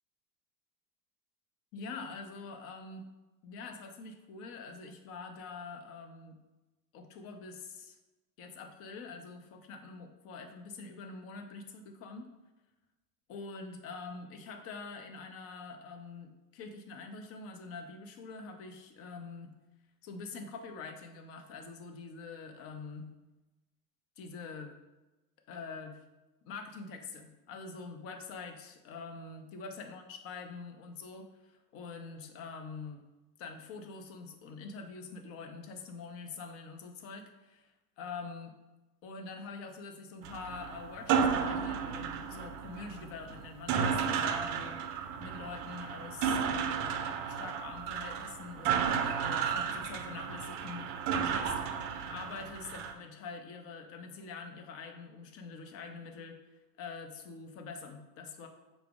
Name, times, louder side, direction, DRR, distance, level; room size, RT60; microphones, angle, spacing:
voice 1, 1.7-3.1 3.4-6.4 6.9-8.0 8.4-12.3 13.3-19.5 20.0-23.1 24.2-24.8 25.5-26.0 26.4-33.0 33.4-38.6 39.0-44.8 45.2-46.9 47.2-51.6 52.1-56.4 56.8-58.5, left 4 dB, 35° left, 5 dB, 0.4 m, -45 dB
sound 1, 40.2-52.9, right 7 dB, 55° right, 0.5 m, -33 dB
4.7 x 2.0 x 3.4 m, 1.1 s
hypercardioid pair, 100°, 47 cm